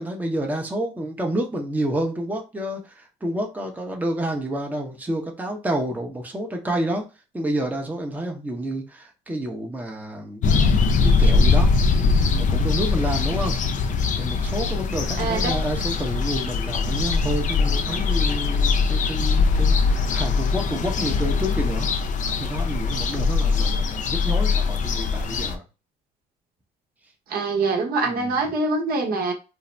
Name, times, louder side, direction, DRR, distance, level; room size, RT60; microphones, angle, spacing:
voice 1, 0.0-7.1 7.3-10.4 11.0-11.7 12.4-13.6 14.2-21.9 22.4-25.6 28.0-28.3, right 1 dB, 10° right, 0.7 m, -29 dB
sound 1, 10.4-25.6, left 4 dB, 45° left, 0.4 m, -21 dB
voice 2, 15.2-15.6 27.3-29.3, right 3 dB, 60° right, 0.8 m, -24 dB
2.6 x 2.0 x 3.2 m
supercardioid pair, 75°, 17 cm